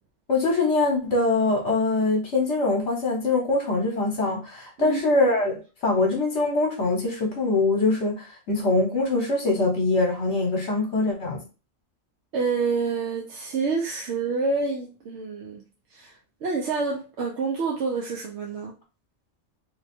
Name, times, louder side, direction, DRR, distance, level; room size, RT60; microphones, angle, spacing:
voice 1, 0.3-11.4, left 3 dB, 65° left, 1 dB, 1.1 m, -23 dB
voice 2, 12.3-15.6 15.9-18.7, right 4 dB, 65° right, -1 dB, 0.9 m, -28 dB
3.0 x 2.2 x 4.2 m, 0.32 s
omnidirectional pair, 1.3 m